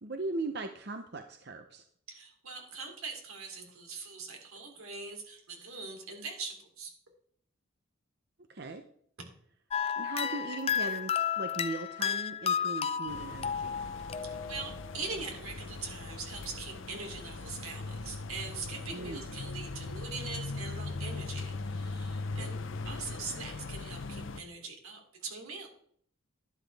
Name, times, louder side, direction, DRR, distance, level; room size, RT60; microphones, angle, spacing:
voice 1, 0.0-1.8 8.5-8.8 10.0-13.8 18.9-19.3 22.3-22.6, right 2 dB, 50° right, 6 dB, 0.7 m, -39 dB
voice 2, 2.1-6.9 14.5-22.6 22.8-25.7, right 4 dB, 85° right, 3 dB, 3.1 m, -42 dB
sound 1, 9.7-14.9, left 7 dB, 30° left, 0.4 m, -32 dB
sound 2, 13.1-24.4, left 3 dB, 65° left, 0.7 m, -40 dB
11.5 x 11.5 x 3.5 m, 0.63 s
head